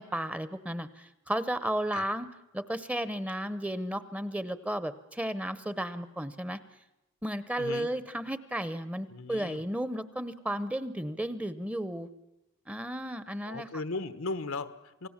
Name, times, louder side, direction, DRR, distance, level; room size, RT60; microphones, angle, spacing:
voice 1, 0.0-2.3 2.5-6.6 7.2-12.1 12.7-13.7, right 1 dB, 5° right, 14 dB, 0.7 m, -33 dB
voice 2, 7.6-7.9 9.1-9.6 13.4-15.1, left 3 dB, 90° left, 11 dB, 1.1 m, -37 dB
28.0 x 19.0 x 7.3 m, 0.92 s
head